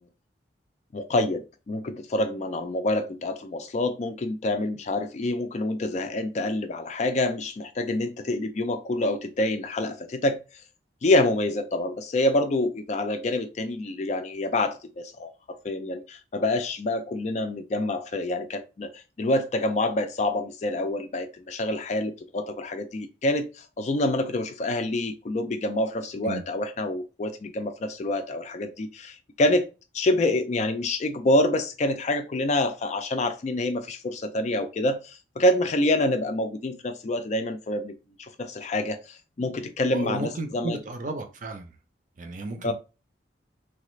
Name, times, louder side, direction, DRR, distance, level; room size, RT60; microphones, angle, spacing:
voice 1, 0.9-10.4 11.0-15.3 15.6-29.7 29.9-37.9 38.2-40.8 42.6-42.7, left 1 dB, 40° left, 0.3 m, -27 dB
voice 2, 39.9-41.8 42.2-42.7, right 2 dB, 40° right, 0.5 m, -34 dB
3.2 x 2.4 x 3.1 m
head